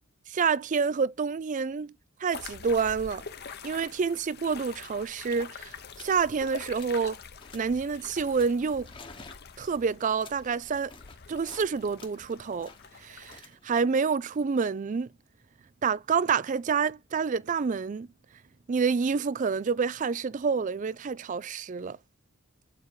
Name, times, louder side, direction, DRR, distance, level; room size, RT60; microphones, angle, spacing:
voice 1, 0.3-1.9 2.2-3.2 3.6-7.2 7.5-8.9 9.6-10.9 11.3-12.7 13.0-15.1 15.8-18.1 18.7-22.0, right 5 dB, 35° right, 0.4 m, -28 dB
sound 1, 2.3-13.4, left 6 dB, 50° left, 0.9 m, -46 dB
sound 2, 5.2-5.4 5.9-6.2 6.5-7.1 7.4-7.8 8.3-11.7 12.0-15.0, left 4 dB, 25° left, 1.1 m, -52 dB
8.2 x 4.8 x 4.7 m
head